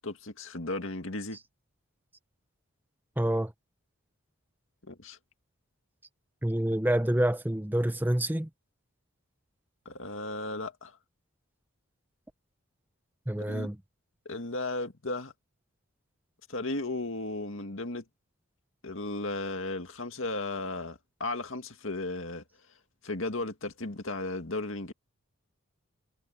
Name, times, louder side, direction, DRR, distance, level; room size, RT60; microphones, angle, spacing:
voice 1, 0.0-1.4 4.9-5.2 9.9-11.0 13.4-13.7 14.3-15.3 16.5-18.1 18.8-22.4 23.0-24.9, left 2 dB, 65° left, 2.1 m, -35 dB
voice 2, 3.2-3.5 6.4-8.5 13.3-13.8, right 1 dB, 10° right, 0.7 m, -27 dB
head